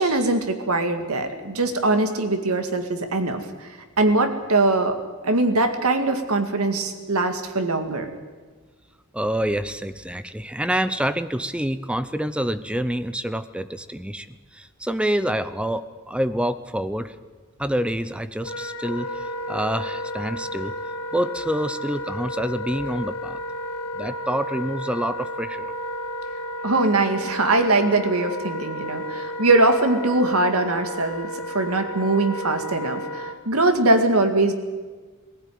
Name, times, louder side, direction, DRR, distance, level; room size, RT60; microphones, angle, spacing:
voice 1, 0.0-3.7 4.0-5.0 5.2-8.1 26.6-34.5, right 2 dB, 80° right, 6 dB, 2.1 m, -22 dB
voice 2, 9.1-17.1 17.6-20.7 21.1-23.4 23.9-25.7, right 1 dB, 5° right, 13 dB, 0.7 m, -27 dB
Wind instrument woodwind instrument, 18.4-33.4, equal, 80° left, 2.1 m, -32 dB
19.0 x 15.5 x 9.4 m, 1.4 s
head